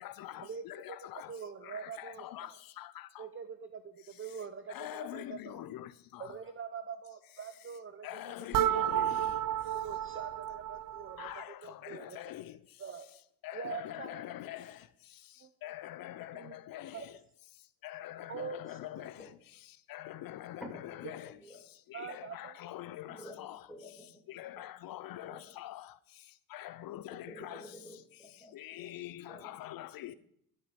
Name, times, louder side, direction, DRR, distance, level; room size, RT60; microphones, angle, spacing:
voice 1, 0.0-1.3 1.6-3.3 4.7-6.3 8.0-9.4 11.2-12.6 13.4-14.8 15.6-17.1 17.8-19.3 19.9-21.4 21.9-23.7 24.3-25.9 26.5-27.7 28.5-30.1, left 13 dB, 75° left, 0.7 m, -44 dB
voice 2, 1.3-2.6 3.2-5.6 6.2-8.2 9.7-11.3 11.6-12.2 12.8-13.1 13.5-14.4 15.4-15.5 16.3-16.5 16.9-17.1 18.3-18.8 21.9-22.6, right 6 dB, 35° right, 0.9 m, -44 dB
sound 1, 8.5-11.4, right 12 dB, 65° right, 0.6 m, -32 dB
voice 3, 20.6-21.6 23.1-23.4 23.7-24.2 25.2-25.4 27.1-28.9 29.3-29.5, equal, ahead, 6.8 m, -50 dB
22.0 x 8.4 x 5.2 m
cardioid pair, 105°, 35 cm